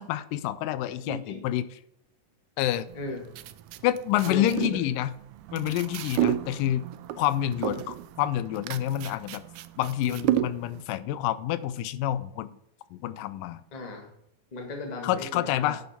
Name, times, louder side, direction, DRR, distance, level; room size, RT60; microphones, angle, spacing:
voice 1, 0.0-1.8 2.6-2.9 3.8-5.1 5.5-6.8 7.2-9.4 9.8-12.6 12.9-13.6 15.0-15.8, left 12 dB, 85° left, 15 dB, 2.2 m, -28 dB
voice 2, 0.8-1.5 2.9-3.3 4.2-4.8 13.7-14.1 14.5-15.8, left 2 dB, 30° left, 2 dB, 0.8 m, -36 dB
sound 1, 2.9-10.8, right 12 dB, 85° right, 1.7 m, -32 dB
10.0 x 6.9 x 4.3 m, 0.77 s
omnidirectional pair, 3.8 m